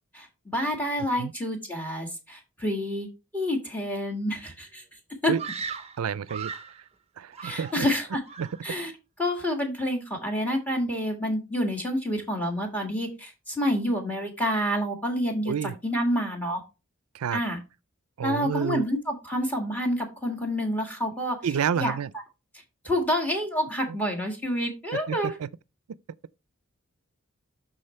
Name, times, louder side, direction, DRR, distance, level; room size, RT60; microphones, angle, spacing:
voice 1, 0.1-3.1 3.3-4.8 5.2-5.3 7.4-8.2 8.6-8.9 9.2-15.5 15.8-16.6 17.3-17.6 18.2-21.4 21.8-22.0 22.8-25.3, equal, 10° left, 1.8 m, -28 dB
Screaming, 5.4-6.8 7.3-8.0 8.3-8.7, right 6 dB, 30° right, 0.6 m, -38 dB
voice 2, 6.0-6.9 7.2-7.9 8.4-8.5 15.5-15.8 17.1-17.4 18.2-18.9 21.4-22.1 23.9-24.0 25.1-25.5, right 7 dB, 85° right, 0.4 m, -29 dB
12.0 x 4.1 x 3.1 m
head